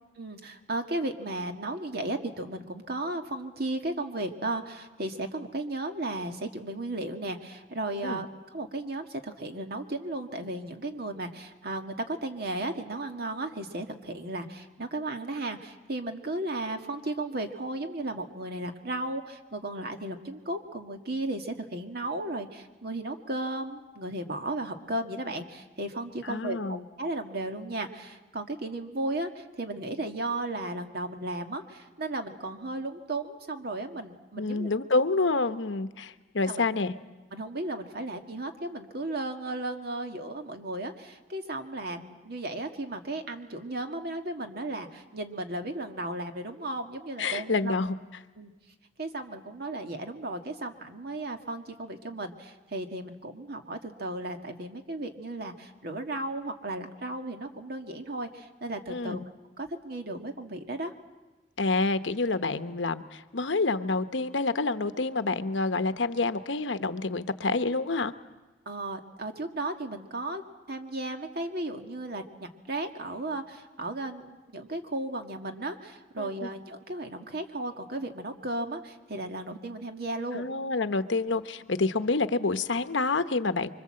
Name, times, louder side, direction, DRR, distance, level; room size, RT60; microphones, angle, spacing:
voice 1, 0.2-34.7 36.5-36.6 37.3-47.7 48.4-48.5 49.0-59.2 59.6-60.9 68.7-70.4 70.7-80.5, right 2 dB, 55° right, 5 dB, 1.8 m, -35 dB
voice 2, 26.2-26.8 34.4-36.9 47.2-47.9 58.9-59.2 61.6-68.1 76.2-76.5 80.3-83.7, left 3 dB, 80° left, 11 dB, 1.0 m, -28 dB
25.5 x 24.5 x 7.7 m, 1.2 s
head